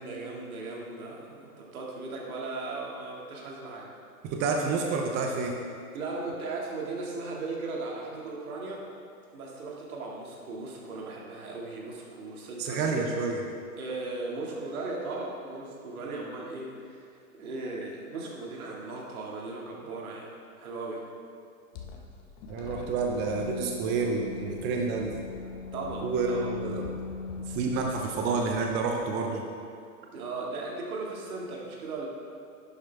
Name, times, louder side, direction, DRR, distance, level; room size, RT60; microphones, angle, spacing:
voice 1, 0.0-3.9 5.9-8.8 9.3-13.0 13.8-20.3 20.6-21.1 25.7-26.6 30.1-32.1, right 3 dB, 70° right, -2 dB, 2.4 m, -37 dB
voice 2, 4.2-5.6 12.6-13.5 22.5-25.2 26.0-26.9 27.5-29.5, right 4 dB, 25° right, 2 dB, 0.7 m, -29 dB
sound 1, 21.7-29.1, left 4 dB, 40° left, 1.4 m, -40 dB
11.0 x 7.6 x 3.5 m, 2.3 s
hypercardioid pair, 125°, 45 cm